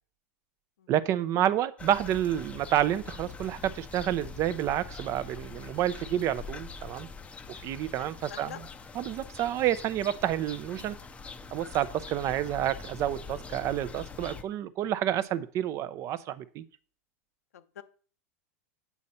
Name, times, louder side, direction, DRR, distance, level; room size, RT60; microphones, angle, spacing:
voice 1, 0.9-7.1 7.6-8.5 9.0-11.0 11.5-16.6, right 11 dB, 40° right, 0.6 m, -29 dB
sound 1, 1.8-14.4, left 4 dB, 15° left, 0.6 m, -44 dB
voice 2, 8.0-8.6 17.5-17.8, left 9 dB, 90° left, 0.9 m, -45 dB
8.2 x 5.2 x 4.3 m
supercardioid pair, 125°, 8 cm